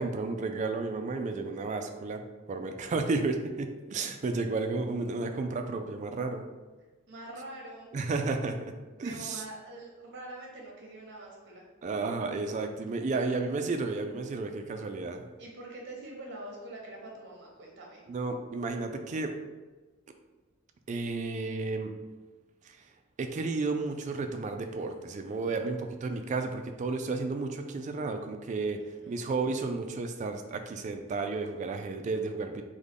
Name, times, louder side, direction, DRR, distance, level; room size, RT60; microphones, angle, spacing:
voice 1, 0.0-2.2 2.5-6.4 7.9-8.7 9.0-9.4 11.8-15.2 18.1-19.3 20.9-22.0 22.6-22.8 23.2-28.8 29.1-32.6, right 3 dB, 40° right, 6 dB, 0.3 m, -32 dB
voice 2, 7.1-7.9 9.0-11.7 13.1-13.4 15.4-18.0 28.8-29.3, right 1 dB, 60° right, -1 dB, 0.9 m, -45 dB
3.7 x 2.1 x 3.4 m, 1.3 s
head